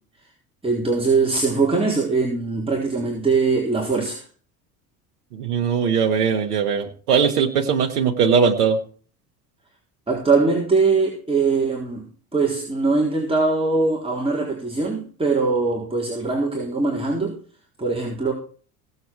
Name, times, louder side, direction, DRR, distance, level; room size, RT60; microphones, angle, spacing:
voice 1, 0.6-4.2 10.1-17.4 17.8-18.3, right 4 dB, 10° right, -3 dB, 4.2 m, -21 dB
voice 2, 5.3-8.8, right 6 dB, 90° right, 4 dB, 1.4 m, -20 dB
17.5 x 8.1 x 4.7 m, 0.42 s
hypercardioid pair, 75°, 44 cm